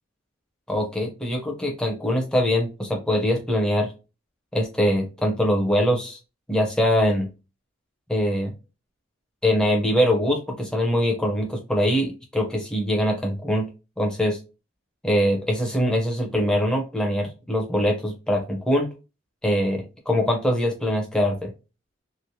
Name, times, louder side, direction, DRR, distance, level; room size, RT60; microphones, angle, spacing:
voice 1, 0.7-3.9 4.5-6.2 6.5-7.3 8.1-8.5 9.4-13.7 14.0-14.4 15.0-18.9 19.4-21.5, equal, 5° left, 0 dB, 0.6 m, -23 dB
3.0 x 2.0 x 2.7 m, 0.30 s
head